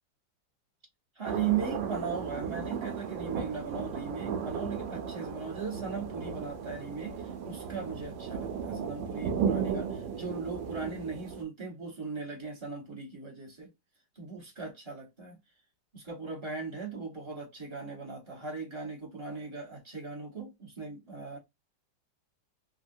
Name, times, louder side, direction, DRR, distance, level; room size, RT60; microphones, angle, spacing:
voice 1, 1.1-13.7 14.2-15.4 15.9-21.4, right 5 dB, 20° right, 0.9 m, -38 dB
sound 1, 1.3-11.4, right 7 dB, 80° right, 1.3 m, -35 dB
3.6 x 2.1 x 2.6 m
omnidirectional pair, 2.0 m